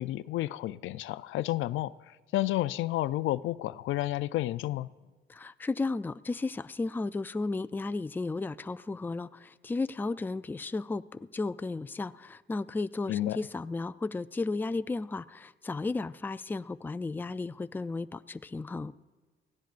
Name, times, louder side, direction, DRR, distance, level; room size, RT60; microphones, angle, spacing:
voice 1, 0.0-4.9 13.1-13.4, left 15 dB, 80° left, 0.4 m, -31 dB
voice 2, 5.3-18.9, left 3 dB, 10° left, 0.3 m, -34 dB
23.5 x 16.0 x 2.5 m
cardioid pair, 90°, 20 cm